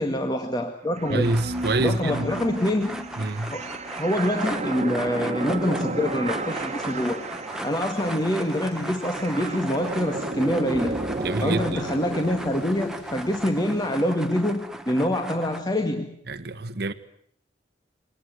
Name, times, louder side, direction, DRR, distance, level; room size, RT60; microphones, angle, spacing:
voice 1, 0.0-1.3 1.8-3.1 3.5-3.7 4.0-7.3 7.6-11.0 11.4-16.1, left 1 dB, 25° left, 1.9 m, -25 dB
sound 1, 0.9-12.7, right 2 dB, 40° right, 1.8 m, -33 dB
voice 2, 1.1-2.4 3.2-3.5 11.2-11.8 16.3-16.9, right 2 dB, 65° right, 1.4 m, -26 dB
sound 2, 1.2-15.6, right 1 dB, 5° right, 1.6 m, -37 dB
Engine, 5.7-14.1, left 1 dB, 75° left, 6.5 m, -49 dB
24.5 x 20.0 x 9.5 m
head